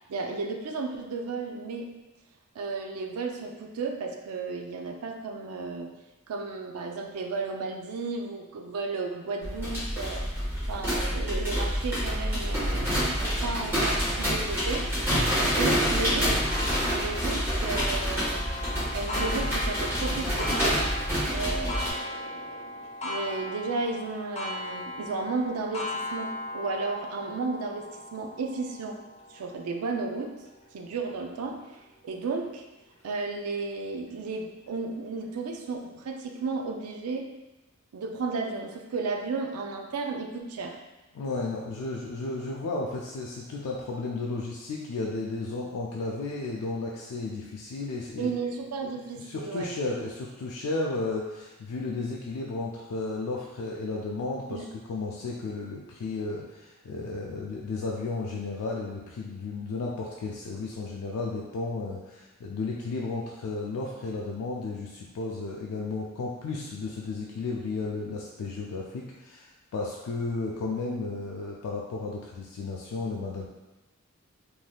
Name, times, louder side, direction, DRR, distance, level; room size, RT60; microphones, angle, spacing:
voice 1, 0.1-1.9 2.6-5.9 6.3-10.3 10.7-14.9 15.6-16.6 16.9-20.8 21.3-27.9 28.1-29.0 29.3-30.3 30.7-31.6 32.0-32.6 33.0-37.3 37.9-40.8 48.2-49.7 54.5-54.7, right 4 dB, 85° right, 3 dB, 0.4 m, -33 dB
sound 1, 9.4-21.9, equal, 10° right, 1.1 m, -27 dB
Clock, 16.5-31.8 32.4-32.5 33.0-33.1 34.1-34.2, left 2 dB, 30° left, 0.5 m, -38 dB
voice 2, 41.1-48.3 49.2-73.5, left 3 dB, 90° left, -3 dB, 0.3 m, -33 dB
3.3 x 2.6 x 2.2 m, 1.1 s
head